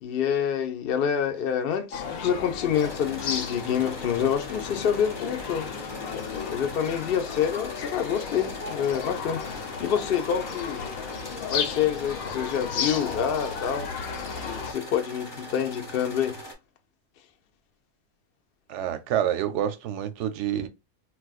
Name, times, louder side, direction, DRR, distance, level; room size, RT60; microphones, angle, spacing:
voice 1, 0.0-5.7 6.5-10.8 11.5-13.9 14.4-16.3, left 8 dB, 60° left, 0.6 m, -27 dB
sound 1, 1.9-14.7, left 7 dB, 85° left, 1.1 m, -34 dB
sound 2, 2.7-16.5, equal, 20° left, 0.9 m, -41 dB
voice 2, 18.7-20.7, right 10 dB, 70° right, 0.8 m, -27 dB
4.0 x 2.2 x 2.3 m
omnidirectional pair, 1.4 m